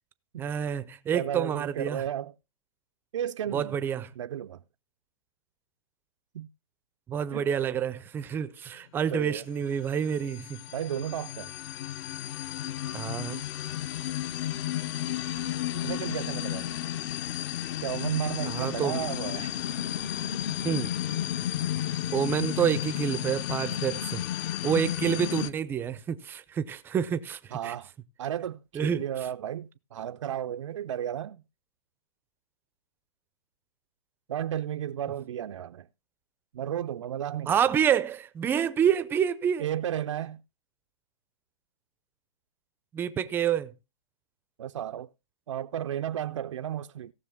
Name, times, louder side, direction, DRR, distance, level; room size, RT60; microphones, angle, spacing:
voice 1, 0.4-2.0 3.5-4.1 7.1-10.6 12.9-13.4 18.5-19.1 20.6-20.9 22.1-24.2 24.6-27.7 28.7-29.0 37.5-39.7 42.9-43.7, right 8 dB, 15° right, 0.5 m, -28 dB
voice 2, 1.1-2.3 3.1-3.8 4.2-4.6 6.3-6.5 7.3-7.5 9.1-9.4 10.7-11.5 15.7-16.7 17.8-19.6 27.5-27.9 28.2-31.4 34.3-35.9 36.5-37.6 39.6-40.4 44.6-45.1 45.5-47.1, right 10 dB, 70° right, 0.5 m, -33 dB
sound 1, 9.8-25.5, left 11 dB, 35° left, 0.7 m, -33 dB
17.5 x 6.5 x 3.6 m
hypercardioid pair, 140°, 16 cm